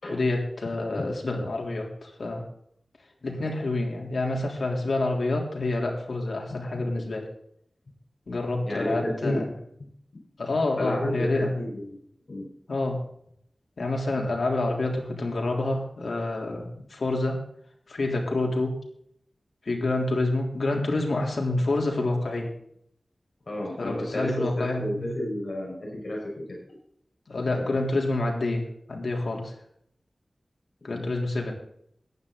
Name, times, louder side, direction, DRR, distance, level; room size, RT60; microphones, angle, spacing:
voice 1, 0.1-2.4 3.2-7.3 8.3-9.5 10.4-11.6 12.7-13.0 13.8-17.4 17.9-18.8 19.7-22.5 23.8-25.1 27.3-29.5 30.8-31.5, left 2 dB, 80° left, 0 dB, 3.6 m, -28 dB
voice 2, 8.6-9.4 10.8-12.0 12.3-12.5 23.5-26.6 30.9-31.0, left 1 dB, 60° left, -2 dB, 5.4 m, -31 dB
14.5 x 10.5 x 4.1 m, 0.69 s
wide cardioid pair, 80°, 0 cm